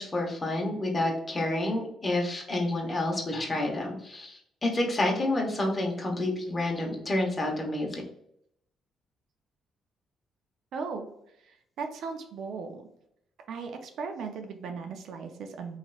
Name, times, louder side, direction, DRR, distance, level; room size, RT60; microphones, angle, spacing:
voice 1, 0.0-8.0, left 1 dB, 25° left, 0 dB, 0.9 m, -29 dB
voice 2, 10.7-11.1 11.4-12.8 13.5-15.8, right 5 dB, 75° right, 5 dB, 0.4 m, -37 dB
3.1 x 2.8 x 2.3 m, 0.75 s
cardioid pair, 90°, 0 cm